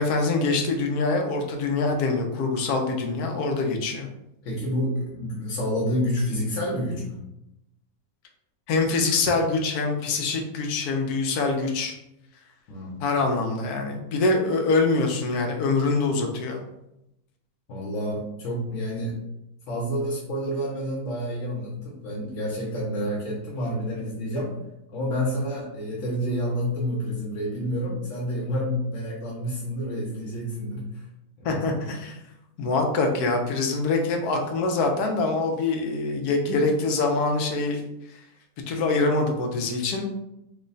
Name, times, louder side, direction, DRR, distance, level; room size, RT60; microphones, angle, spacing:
voice 1, 0.0-4.1 8.7-11.9 13.0-16.6 31.4-32.2 32.6-37.8 38.7-40.1, left 3 dB, 80° left, 3 dB, 1.2 m, -24 dB
voice 2, 4.4-7.2 12.7-13.0 17.7-19.2 19.7-24.5 24.9-31.0 31.4-31.7, equal, 60° left, -5 dB, 1.0 m, -29 dB
3.1 x 2.2 x 3.8 m, 0.86 s
omnidirectional pair, 1.6 m